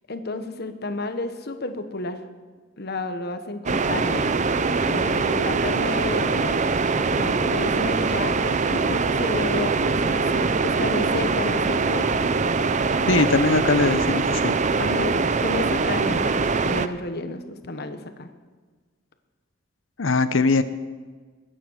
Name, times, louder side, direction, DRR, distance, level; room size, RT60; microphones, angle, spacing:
voice 1, 0.1-2.2 2.8-4.3 4.9-6.6 7.1-12.1 14.8-18.3, left 2 dB, 55° left, 8 dB, 1.2 m, -31 dB
sound 1, 3.6-16.9, right 4 dB, 35° right, 0.6 m, -23 dB
voice 2, 13.1-14.6 20.0-20.6, left 3 dB, 70° left, 13 dB, 0.8 m, -21 dB
21.5 x 9.1 x 6.5 m, 1.4 s
head